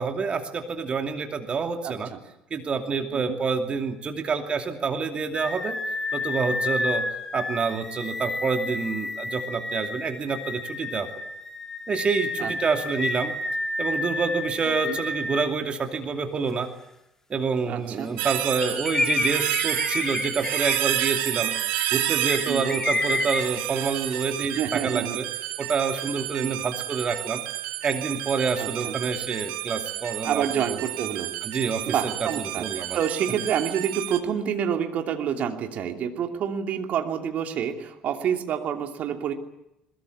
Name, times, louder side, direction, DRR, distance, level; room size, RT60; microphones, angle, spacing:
voice 1, 0.0-2.1 2.5-5.8 6.1-7.0 7.3-11.1 11.9-13.3 13.8-16.7 17.3-21.5 21.9-25.3 25.6-27.4 27.8-30.8 31.4-32.3 32.6-33.0, right 5 dB, 35° right, 5 dB, 2.6 m, -27 dB
voice 2, 1.8-2.2 3.1-3.4 12.4-12.5 14.9-15.0 17.7-18.1 22.5-22.8 24.4-25.2 26.4-26.6 28.6-28.9 30.2-31.3 31.9-39.3, right 8 dB, 50° right, 4 dB, 2.8 m, -28 dB
sound 1, 5.3-15.5 16.0-16.1 18.6-23.4, left 2 dB, 15° left, 3.3 m, -30 dB
sound 2, 18.2-34.2, right 16 dB, 65° right, 1.8 m, -30 dB
22.0 x 21.5 x 8.5 m, 0.86 s
hypercardioid pair, 60°, 3 cm